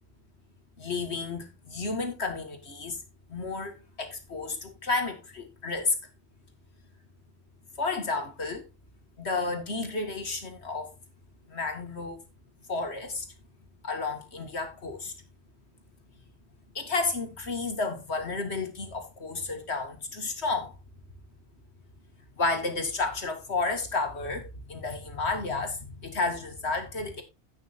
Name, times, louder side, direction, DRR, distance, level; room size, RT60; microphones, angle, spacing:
voice 1, 0.8-3.0 3.3-5.9 7.8-8.6 9.2-10.9 11.5-12.2 12.7-13.3 13.8-15.1 16.7-20.7 22.3-27.2, left 3 dB, 70° left, 2.3 m, -31 dB
16.5 x 6.0 x 2.6 m
omnidirectional pair, 1.2 m